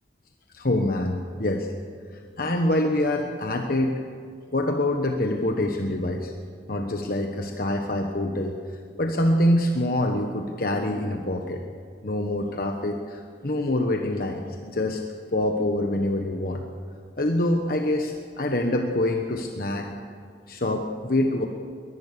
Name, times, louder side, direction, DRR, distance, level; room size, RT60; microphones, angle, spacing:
voice 1, 0.5-1.7 2.3-4.0 4.5-6.3 6.7-8.6 9.0-11.6 12.0-15.0 15.3-16.6 17.2-19.9 20.5-21.5, left 1 dB, 55° left, 3 dB, 1.2 m, -25 dB
22.0 x 19.5 x 6.9 m, 2.2 s
head